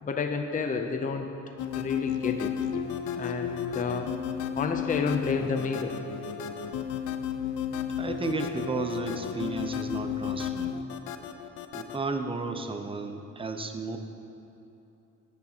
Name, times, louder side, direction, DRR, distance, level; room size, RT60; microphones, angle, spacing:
voice 1, 0.0-1.3 1.8-2.6 3.1-4.1 4.6-6.0, left 5 dB, 25° left, 5 dB, 0.6 m, -30 dB
sound 1, 1.6-12.0, left 8 dB, 80° left, 0.6 m, -33 dB
voice 2, 8.0-10.8 11.7-14.0, right 3 dB, 20° right, 6 dB, 0.7 m, -33 dB
13.5 x 8.4 x 2.9 m, 2.9 s
cardioid pair, 90°, 30 cm